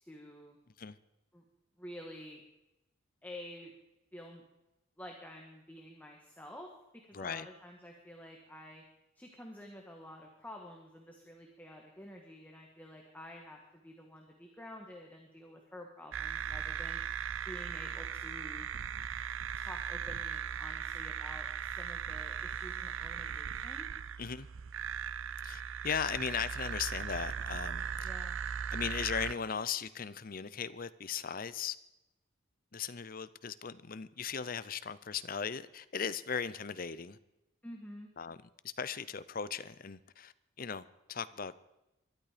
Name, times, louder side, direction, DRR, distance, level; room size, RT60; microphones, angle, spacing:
voice 1, 0.1-0.6 1.3-1.4 1.8-2.4 3.2-3.7 4.1-4.4 5.0-8.8 9.1-17.0 17.5-18.7 19.6-23.9 28.0-28.4 37.6-38.1, left 1 dB, 10° left, 1 dB, 1.6 m, -50 dB
voice 2, 7.1-7.5 24.2-24.5 25.4-28.1 28.7-31.8 32.7-37.2 38.2-38.4 38.6-41.5, left 6 dB, 45° left, 15 dB, 0.6 m, -38 dB
sound 1, 16.1-29.3, right 7 dB, 75° right, 0.5 m, -38 dB
22.0 x 12.5 x 5.1 m, 0.94 s
head